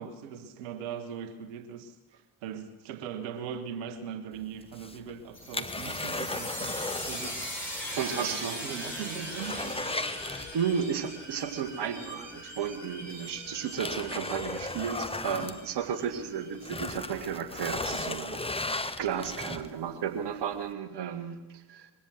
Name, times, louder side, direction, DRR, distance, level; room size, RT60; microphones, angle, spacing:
voice 1, 0.0-2.0 2.4-7.4 8.1-10.0, right 7 dB, 75° right, 11 dB, 1.5 m, -40 dB
sound 1, 4.6-7.6 7.9-8.0 8.4-8.5 8.9-10.9 12.3-12.4 13.1-16.2 16.5-19.9 20.4-20.5, left 2 dB, 10° left, 1.4 m, -36 dB
sound 2, 5.3-16.7, equal, 90° left, 6.0 m, -40 dB
voice 2, 8.0-8.7 10.5-21.9, right 7 dB, 60° right, 9 dB, 2.4 m, -33 dB
22.0 x 16.0 x 7.9 m, 1.1 s
hypercardioid pair, 40°, 47 cm